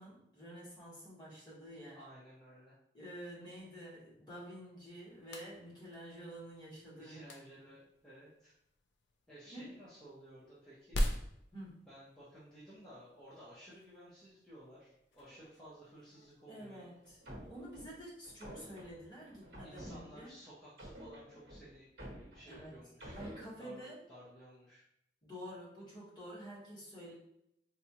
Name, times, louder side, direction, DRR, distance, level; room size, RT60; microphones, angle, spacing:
voice 1, 0.0-2.0 2.9-7.2 9.5-9.8 11.5-11.8 16.5-17.2 17.5-20.3 22.5-22.8 23.1-24.0 25.2-27.1, equal, 25° left, -7 dB, 1.2 m, -49 dB
voice 2, 1.9-2.7 6.9-8.5 9.3-11.0 11.9-16.9 19.6-21.9 22.3-23.2 23.6-24.8, equal, 5° left, -11 dB, 0.7 m, -55 dB
sound 1, 4.8-17.6, equal, 80° left, 0.5 m, -44 dB
sound 2, 17.1-20.4 20.8-23.4, equal, 60° right, 1.2 m, -50 dB
4.0 x 2.3 x 2.9 m, 0.78 s
head